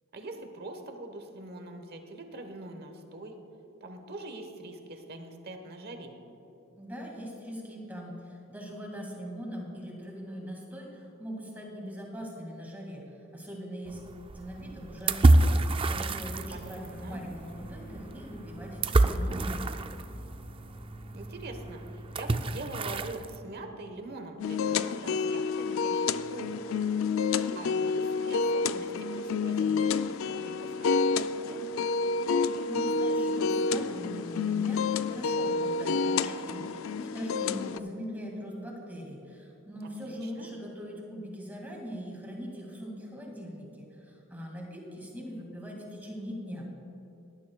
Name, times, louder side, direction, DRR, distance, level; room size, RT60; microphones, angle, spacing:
voice 1, 0.1-3.3 3.8-6.2 16.5-17.2 21.1-26.9 27.5-30.9 31.1-31.6 40.0-40.5, right 2 dB, 50° right, 5 dB, 1.1 m, -43 dB
voice 2, 6.8-14.0 14.3-19.7 32.4-46.7, equal, 10° right, -2 dB, 2.1 m, -41 dB
sound 1, 13.9-23.4, right 2 dB, 25° right, 0.3 m, -28 dB
sound 2, 15.9-24.2, right 1 dB, 40° left, 1.2 m, -48 dB
sound 3, 24.4-37.8, left 4 dB, 70° left, 0.4 m, -29 dB
18.0 x 11.5 x 2.3 m, 3.0 s
head